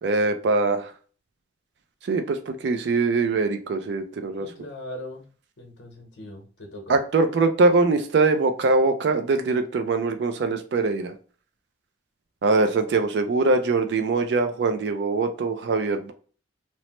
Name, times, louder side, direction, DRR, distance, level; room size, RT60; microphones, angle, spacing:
voice 1, 0.0-0.9 2.0-4.5 6.9-11.1 12.4-16.1, right 3 dB, 65° right, 7 dB, 0.3 m, -22 dB
voice 2, 4.4-5.2 5.6-6.9, left 1 dB, 75° left, 1 dB, 0.8 m, -40 dB
3.0 x 2.1 x 2.8 m, 0.42 s
head